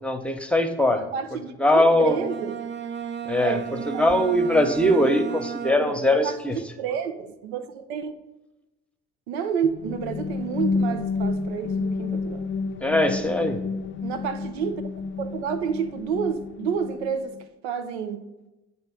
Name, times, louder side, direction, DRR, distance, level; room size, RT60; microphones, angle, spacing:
voice 1, 0.0-1.0 1.6-2.2 3.3-6.6 12.8-13.6, left 1 dB, 5° left, 6 dB, 1.0 m, -21 dB
voice 2, 0.9-2.6 3.4-3.7 3.9-4.1 5.8-6.4 6.8-8.1 9.3-12.4 14.0-14.8 15.2-17.4 17.6-18.2, right 7 dB, 90° right, 8 dB, 0.6 m, -29 dB
Bowed string instrument, 1.9-6.2, right 7 dB, 35° right, 0.7 m, -34 dB
sound 1, 9.6-17.4, left 4 dB, 35° left, 0.5 m, -30 dB
8.2 x 3.0 x 6.2 m, 1.0 s
hypercardioid pair, 50°, 32 cm